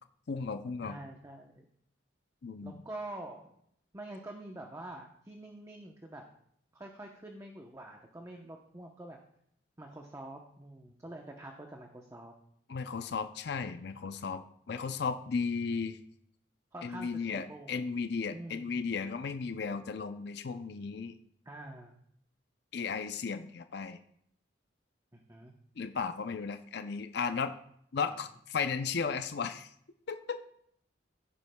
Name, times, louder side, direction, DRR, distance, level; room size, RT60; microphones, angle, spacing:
voice 1, 0.3-1.0 2.4-2.8 12.7-16.0 16.8-21.1 22.7-24.0 25.8-27.5 27.9-29.7 30.1-30.5, left 5 dB, 60° left, 8 dB, 0.5 m, -35 dB
voice 2, 0.8-1.7 2.6-3.5 3.9-6.2 6.7-9.2 9.8-12.3 16.7-17.8 18.3-18.7 21.4-21.9 25.1-25.5, right 1 dB, 15° right, 2 dB, 0.8 m, -46 dB
16.5 x 9.7 x 2.3 m, 0.69 s
head